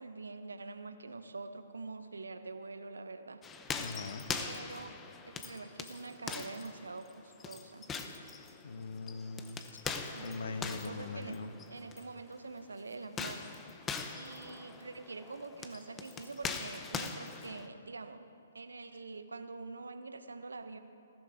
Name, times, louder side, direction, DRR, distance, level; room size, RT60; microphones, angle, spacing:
voice 1, 0.0-3.4 4.3-5.0 5.3-7.9 10.1-11.4 11.7-13.5 14.1-18.3 18.5-20.8, right 3 dB, 75° right, 10 dB, 0.9 m, -45 dB
sound 1, 3.4-12.1 13.0-17.7, left 5 dB, 15° left, 0.8 m, -42 dB
voice 2, 3.8-4.3 8.6-9.6 10.2-11.5, left 4 dB, 65° left, 9 dB, 1.1 m, -41 dB
20.0 x 15.0 x 3.7 m, 2.8 s
figure-of-eight pair, 130°, 0 cm